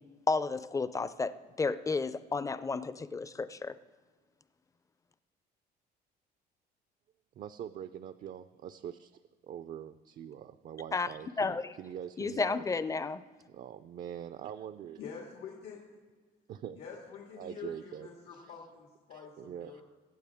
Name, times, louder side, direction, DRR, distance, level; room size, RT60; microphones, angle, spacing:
voice 1, 0.3-3.7 10.9-11.1 11.4-11.7 12.2-13.2, left 4 dB, 20° left, 14 dB, 0.5 m, -32 dB
voice 2, 7.4-12.6 13.5-15.0 16.5-16.8 17.4-18.5 19.1-19.8, right 9 dB, 55° right, 11 dB, 0.5 m, -44 dB
voice 3, 15.0-15.8 16.7-19.8, left 6 dB, 85° left, -1 dB, 2.0 m, -46 dB
23.5 x 8.5 x 3.6 m, 1.4 s
cardioid pair, 110°, 17 cm